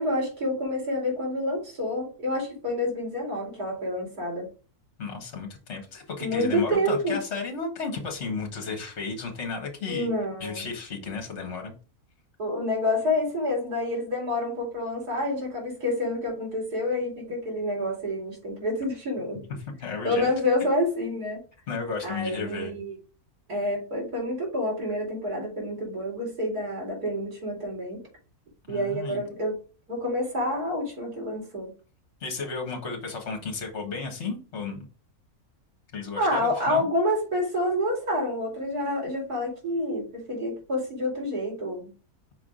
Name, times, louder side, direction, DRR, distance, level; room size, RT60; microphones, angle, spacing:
voice 1, 0.0-4.5 6.2-7.2 9.9-10.7 12.4-19.4 19.9-21.4 22.0-23.0 23.5-28.0 28.7-29.6 29.9-31.7 36.2-41.9, left 1 dB, 80° right, -1 dB, 3.4 m, -28 dB
voice 2, 5.0-10.1 10.4-11.7 19.8-20.3 21.7-22.7 28.7-29.2 32.2-34.9 35.9-36.9, left 4 dB, 50° left, 2 dB, 1.7 m, -33 dB
5.6 x 4.8 x 3.7 m, 0.35 s
omnidirectional pair, 1.6 m